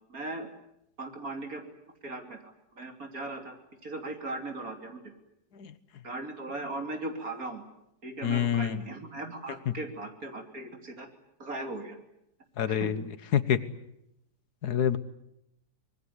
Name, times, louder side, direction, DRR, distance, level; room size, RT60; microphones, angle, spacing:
voice 1, 0.1-0.5 1.0-1.6 2.0-3.6 3.8-5.1 6.0-7.6 8.0-11.1 11.4-12.0 12.7-12.9, right 2 dB, 55° right, 4 dB, 3.6 m, -38 dB
voice 2, 8.2-8.8 9.7-9.8 12.6-13.0 13.3-13.7 14.6-15.0, left 9 dB, 70° left, 14 dB, 1.7 m, -26 dB
25.0 x 21.0 x 9.6 m, 0.82 s
omnidirectional pair, 1.8 m